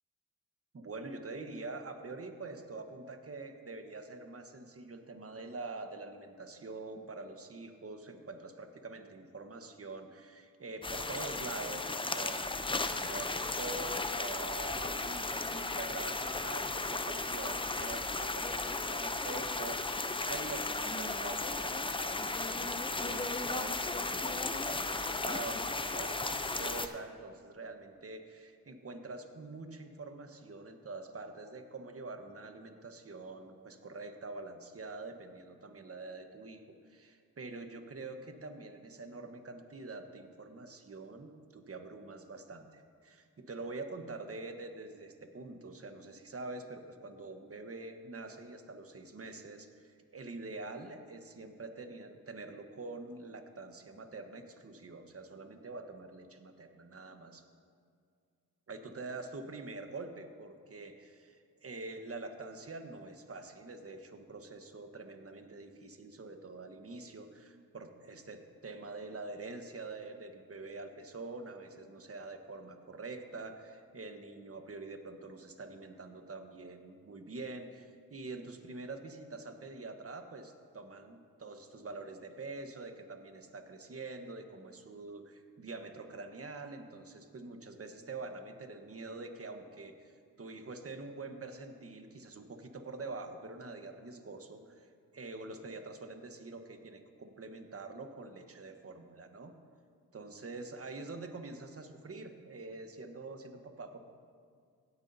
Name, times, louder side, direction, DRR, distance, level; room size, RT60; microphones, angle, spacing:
voice 1, 0.7-57.4 58.7-94.9 95.1-99.5 100.1-104.1, right 3 dB, 35° right, 6 dB, 1.2 m, -45 dB
sound 1, 10.8-26.9, left 3 dB, 15° left, 0.6 m, -35 dB
16.5 x 9.5 x 2.7 m, 2.2 s
cardioid pair, 55°, 38 cm